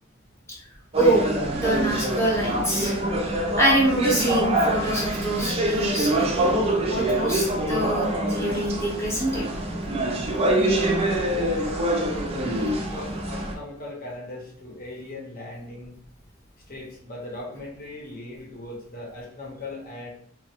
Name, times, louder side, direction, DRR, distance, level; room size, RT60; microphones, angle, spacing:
sound 1, 0.9-13.5, right 1 dB, 30° right, 0.4 m, -25 dB
voice 1, 1.0-2.9 3.6-6.6 6.9-9.4, right 1 dB, 15° left, -5 dB, 0.8 m, -25 dB
voice 2, 11.3-15.9 16.7-20.1, left 2 dB, 45° left, -3 dB, 0.9 m, -38 dB
3.0 x 2.1 x 2.9 m, 0.63 s
head